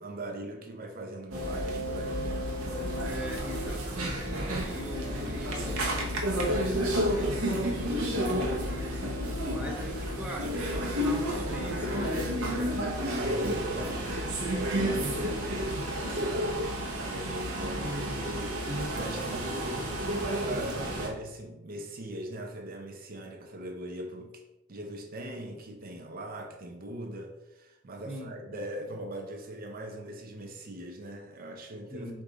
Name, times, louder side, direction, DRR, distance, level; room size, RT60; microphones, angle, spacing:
voice 1, 0.0-2.5 12.6-12.7 13.0-24.4 24.7-32.2, right 1 dB, 45° right, 3 dB, 0.5 m, -40 dB
sound 1, 1.3-21.1, equal, 75° right, 0.9 m, -31 dB
voice 2, 3.1-5.8 6.4-8.8 9.5-12.8 28.0-28.6 31.9-32.2, right 1 dB, 5° right, -1 dB, 0.6 m, -41 dB
4.7 x 2.6 x 3.8 m, 1.0 s
head